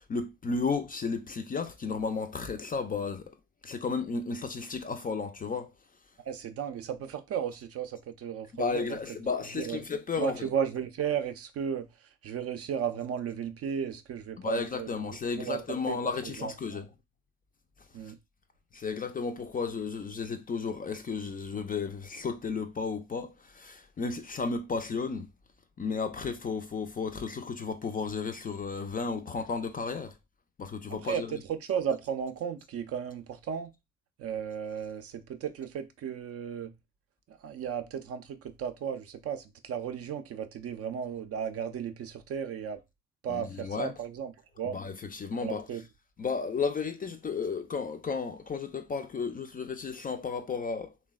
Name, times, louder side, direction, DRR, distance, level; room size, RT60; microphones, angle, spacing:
voice 1, 0.0-3.3 3.6-5.7 8.5-10.5 14.4-16.9 18.7-25.3 25.8-30.1 30.6-31.3 43.3-43.9 44.7-45.7 46.2-50.9, left 4 dB, 25° left, 0.4 m, -33 dB
voice 2, 6.2-9.0 9.5-9.8 10.2-11.9 12.2-14.9 15.4-16.0 16.4-16.8 17.9-18.2 30.9-33.7 34.2-36.7 37.3-42.8 43.2-44.3 44.6-44.8 45.4-45.8, right 8 dB, 45° right, 0.5 m, -34 dB
3.2 x 2.1 x 2.3 m
hypercardioid pair, 50°, 34 cm